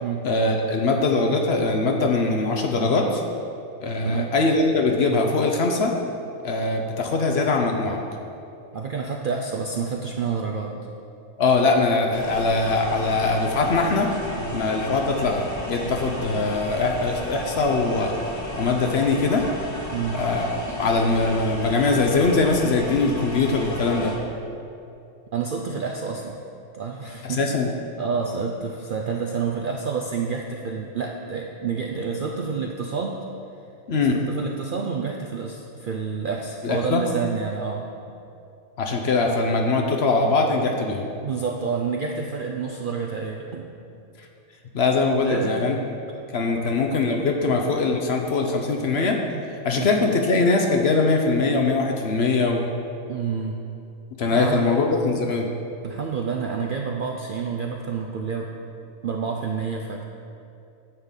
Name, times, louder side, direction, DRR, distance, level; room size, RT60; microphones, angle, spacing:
voice 1, 0.2-3.2 3.8-6.0 6.4-8.0 11.4-14.1 14.5-18.1 18.6-19.5 20.1-24.1 27.2-27.7 33.9-34.2 36.6-37.0 38.8-41.1 44.2-44.3 44.7-45.8 46.3-49.2 49.6-52.7 54.2-55.5, left 3 dB, 55° left, 2 dB, 0.9 m, -22 dB
voice 2, 8.7-10.7 14.4-14.6 15.8-15.9 19.9-20.2 25.3-26.4 26.7-27.4 28.0-33.2 34.3-37.8 41.2-43.7 45.3-45.6 46.5-46.7 49.3-49.4 49.8-49.9 53.1-53.6 54.3-54.8 55.8-58.5 59.0-60.0, right 5 dB, 60° right, 1 dB, 0.5 m, -28 dB
sound 1, 12.1-24.2, equal, 15° left, 0.9 m, -34 dB
9.6 x 3.8 x 7.2 m, 2.6 s
omnidirectional pair, 1.4 m